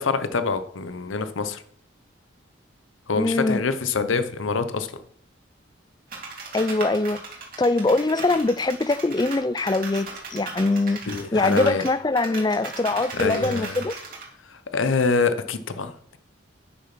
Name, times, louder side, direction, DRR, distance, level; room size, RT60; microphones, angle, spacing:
voice 1, 0.0-1.6 3.1-4.9 11.1-11.8 13.1-13.8 14.5-16.2, left 4 dB, 85° left, 0.8 m, -25 dB
voice 2, 3.1-3.6 6.5-7.2 7.6-11.0 11.3-13.9, left 2 dB, 20° left, 0.3 m, -23 dB
sound 1, 6.1-14.2, right 4 dB, 45° right, 3.0 m, -36 dB
9.7 x 6.6 x 5.9 m
head